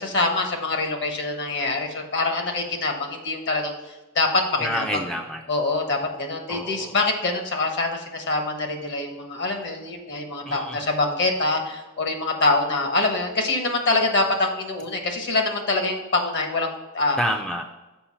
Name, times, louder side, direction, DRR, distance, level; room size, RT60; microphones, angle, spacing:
voice 1, 0.0-4.8 5.5-17.2, left 3 dB, 55° left, 4 dB, 1.2 m, -25 dB
voice 2, 4.6-5.4 6.5-6.9 10.5-10.8 17.2-17.6, equal, 5° left, 3 dB, 0.4 m, -28 dB
7.0 x 5.1 x 5.5 m, 1.1 s
head